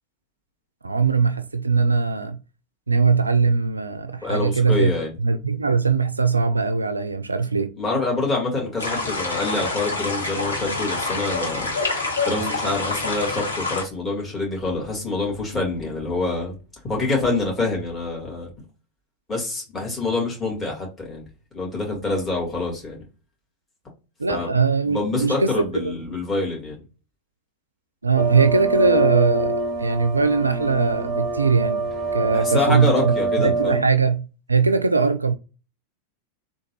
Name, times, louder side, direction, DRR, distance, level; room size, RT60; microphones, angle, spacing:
voice 1, 0.8-2.4 2.9-7.7 24.2-25.9 28.0-35.3, right 4 dB, 80° right, 0.3 m, -21 dB
voice 2, 4.2-5.1 7.8-11.7 12.2-16.6 16.8-18.5 19.3-21.2 21.5-23.0 24.3-24.5 24.9-26.8 32.3-33.8, left 3 dB, 15° left, 2.0 m, -26 dB
sound 1, 8.8-13.8, left 3 dB, 75° left, 0.9 m, -27 dB
sound 2, 28.2-33.8, right 3 dB, 25° right, 0.8 m, -25 dB
3.7 x 2.4 x 3.0 m
figure-of-eight pair, 90°, 0 cm